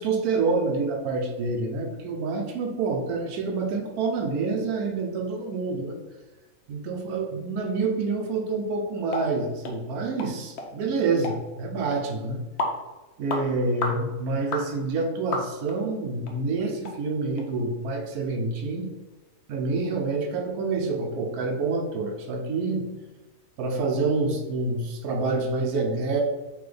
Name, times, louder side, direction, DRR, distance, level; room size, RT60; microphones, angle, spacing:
voice 1, 0.0-6.0 6.7-12.4 13.2-19.0 19.5-22.9 23.6-26.2, right 3 dB, 90° right, 2 dB, 1.1 m, -27 dB
sound 1, 9.1-9.3 9.6-9.8 10.2-10.3 10.6-10.7 11.2-11.4 11.9-12.0 12.6-12.8 13.3-13.4 13.8-14.0 14.5-14.7 15.3-15.8 16.2-16.3 16.8-17.0 17.4-17.5, left 2 dB, 55° left, 0.8 m, -30 dB
3.5 x 3.3 x 3.8 m, 1.1 s
omnidirectional pair, 1.6 m